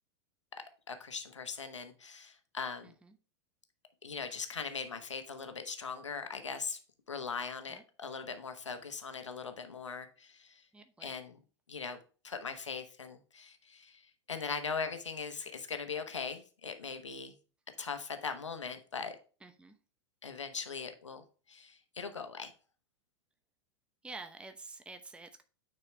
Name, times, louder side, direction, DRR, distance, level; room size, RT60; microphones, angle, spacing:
voice 1, 0.9-2.9 4.0-6.8 7.1-10.6 11.0-11.4 11.7-12.0 12.2-17.3 17.8-19.2 20.2-22.5, left 5 dB, 80° left, 7 dB, 1.1 m, -40 dB
voice 2, 2.8-3.2 7.7-7.8 10.7-11.1 19.4-19.8 24.0-25.4, right 3 dB, 5° right, 8 dB, 0.8 m, -49 dB
9.7 x 4.4 x 3.2 m, 0.35 s
figure-of-eight pair, 95°, 15 cm